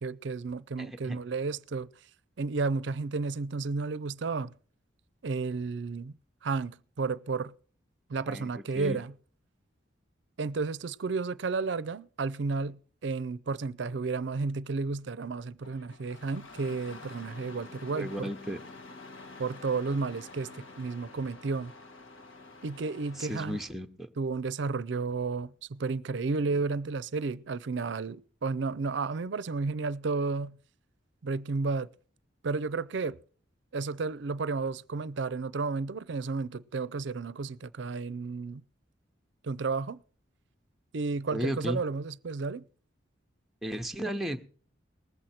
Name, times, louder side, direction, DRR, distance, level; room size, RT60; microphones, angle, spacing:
voice 1, 0.0-1.9 2.4-4.5 5.2-6.1 6.4-7.5 8.1-9.1 10.4-18.3 19.4-21.7 22.6-23.6 24.2-30.6 31.2-31.9 32.4-33.2 33.7-38.6 39.4-40.0 40.9-42.6, right 4 dB, 65° right, 0.5 m, -32 dB
voice 2, 0.8-1.2 8.3-8.5 8.7-9.0 17.9-18.6 23.2-24.1 41.3-41.8 43.6-44.4, equal, ahead, 0.8 m, -34 dB
Engine starting, 15.6-23.7, left 3 dB, 85° left, 1.5 m, -48 dB
19.5 x 7.8 x 4.3 m
head